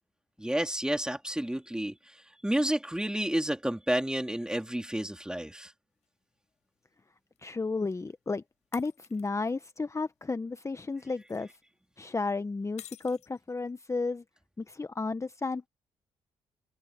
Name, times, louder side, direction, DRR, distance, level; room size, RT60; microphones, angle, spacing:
voice 1, 0.4-1.9 2.4-5.7, right 1 dB, 5° right, 3.4 m, -30 dB
sound 1, 6.0-6.1 7.4-7.5 8.7-9.5 11.0-11.4 12.8-13.7, left 12 dB, 75° left, 6.0 m, -51 dB
voice 2, 7.4-8.4 8.7-11.5 12.0-14.2 14.6-15.7, left 3 dB, 25° left, 1.0 m, -33 dB
supercardioid pair, 50°, 12 cm